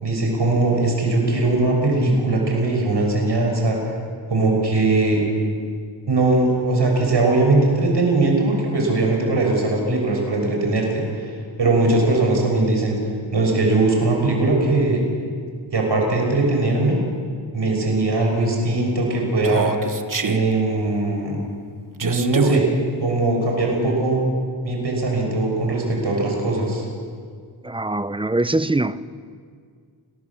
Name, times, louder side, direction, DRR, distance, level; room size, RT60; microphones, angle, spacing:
voice 1, 0.0-3.8 4.3-5.2 6.1-11.3 11.6-13.0 13.3-15.0 15.7-17.0 17.5-19.7 20.2-21.5 22.0-22.7 23.0-24.2 24.6-26.8, right 2 dB, 70° right, 1 dB, 6.4 m, -20 dB
Human voice, 19.4-20.4 22.0-22.6, right 5 dB, 45° right, 1.5 m, -26 dB
voice 2, 27.6-29.1, right 2 dB, 10° right, 14 dB, 0.7 m, -23 dB
29.5 x 20.5 x 7.3 m, 2.1 s
wide cardioid pair, 80°, 44 cm